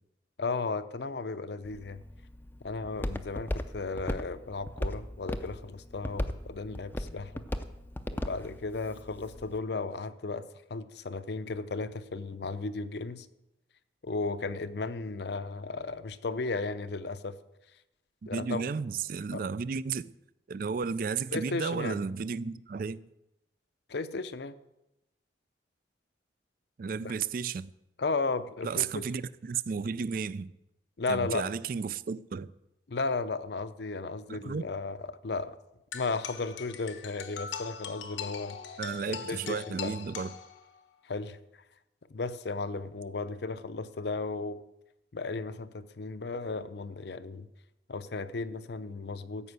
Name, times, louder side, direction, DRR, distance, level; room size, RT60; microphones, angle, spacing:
voice 1, 0.4-2.0 2.6-7.4 8.1-13.3 14.0-17.4 18.3-18.6 19.3-19.5 21.3-22.0 23.9-24.6 27.0-27.1 28.0-29.1 31.0-31.5 32.9-35.6 35.9-38.6 39.0-39.9 41.0-41.4 42.1-44.6 45.1-47.5 47.9-49.5, left 3 dB, 60° left, 0.6 m, -35 dB
Walk footsteps, 1.6-9.6, left 1 dB, 10° left, 0.5 m, -38 dB
voice 2, 18.3-20.1 20.5-23.0 26.8-27.7 28.6-30.5 31.1-32.5 34.3-34.7 38.8-40.3, right 5 dB, 50° right, 0.3 m, -33 dB
sound 1, 35.9-40.9, left 7 dB, 90° left, 1.1 m, -41 dB
14.0 x 5.5 x 8.1 m
head